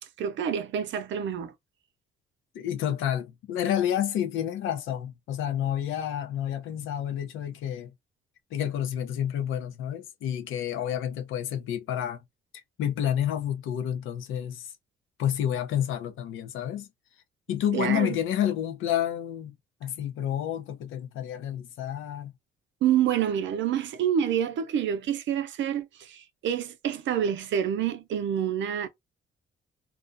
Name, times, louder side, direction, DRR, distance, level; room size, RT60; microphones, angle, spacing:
voice 1, 0.2-1.5 17.7-18.2 22.8-28.9, right 9 dB, 70° right, 0.5 m, -27 dB
voice 2, 2.5-7.9 8.5-12.2 12.8-14.7 15.2-16.9 17.5-19.5 19.8-22.3, left 10 dB, 85° left, 0.6 m, -29 dB
2.4 x 2.1 x 2.5 m
cardioid pair, 90°, 20 cm